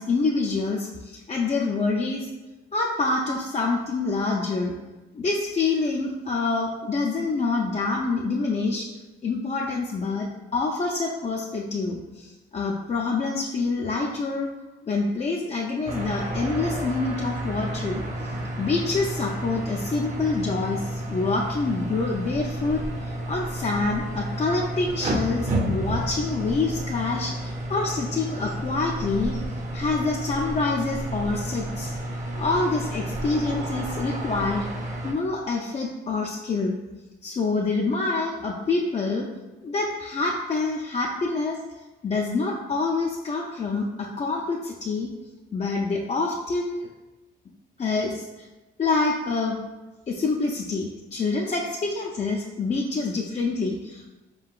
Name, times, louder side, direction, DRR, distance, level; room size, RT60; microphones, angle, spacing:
voice 1, 0.0-2.3 2.7-4.7 5.1-8.9 9.2-14.5 14.8-29.4 29.7-31.9 32.4-34.7 35.0-36.8 37.2-39.3 39.6-41.6 42.0-45.1 45.5-46.9 47.8-48.5 48.8-49.6 50.1-54.1, left 3 dB, 35° left, -1 dB, 0.5 m, -26 dB
sound 1, 15.9-35.1, right 1 dB, 35° right, 0.7 m, -31 dB
4.3 x 3.8 x 2.4 m, 1.1 s
cardioid pair, 90°, 20 cm